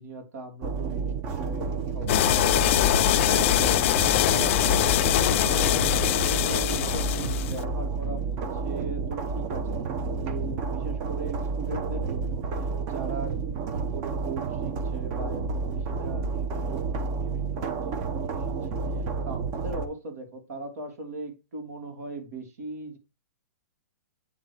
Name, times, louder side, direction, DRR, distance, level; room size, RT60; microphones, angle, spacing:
voice 1, 0.0-2.9 3.4-23.0, right 2 dB, 65° right, 2.7 m, -39 dB
sound 1, 0.6-19.9, right 4 dB, 35° right, 1.1 m, -30 dB
sound 2, 2.1-7.6, left 13 dB, 45° left, 0.4 m, -23 dB
9.1 x 3.1 x 4.8 m
hypercardioid pair, 130°, 9 cm